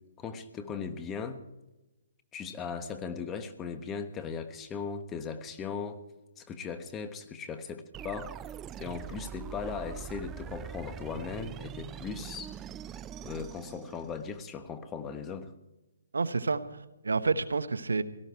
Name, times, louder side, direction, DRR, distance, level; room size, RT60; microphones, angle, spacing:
voice 1, 0.2-1.4 2.3-6.0 6.4-8.4 8.8-12.5 13.2-15.5, left 6 dB, 15° left, 9 dB, 1.2 m, -38 dB
sound 1, 7.9-14.4, right 9 dB, 15° right, 0.4 m, -43 dB
voice 2, 16.1-18.0, right 4 dB, 85° right, 15 dB, 0.9 m, -29 dB
17.5 x 13.5 x 4.6 m, 1.0 s
hypercardioid pair, 145°, 0 cm